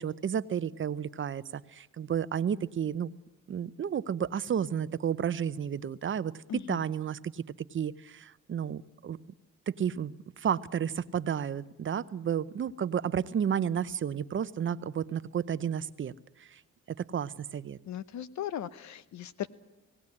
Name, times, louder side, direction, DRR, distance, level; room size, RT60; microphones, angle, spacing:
voice 1, 0.0-3.1 3.5-7.4 7.7-9.2 9.7-16.1 16.4-16.6 16.9-17.8, right 8 dB, 40° right, 15 dB, 0.7 m, -32 dB
voice 2, 6.5-6.8 17.9-19.5, left 10 dB, 65° left, 16 dB, 0.9 m, -37 dB
18.5 x 17.0 x 9.7 m, 0.98 s
cardioid pair, 90°, 30 cm